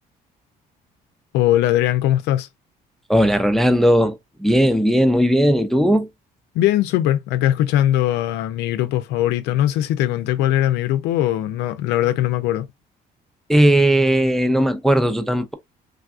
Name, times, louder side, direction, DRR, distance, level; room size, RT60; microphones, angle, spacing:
voice 1, 1.3-2.5 6.5-12.7, left 13 dB, 90° left, 0.4 m, -20 dB
voice 2, 3.1-6.1 13.5-15.5, equal, ahead, 0.3 m, -17 dB
3.3 x 2.3 x 2.4 m
cardioid pair, 110°, 17 cm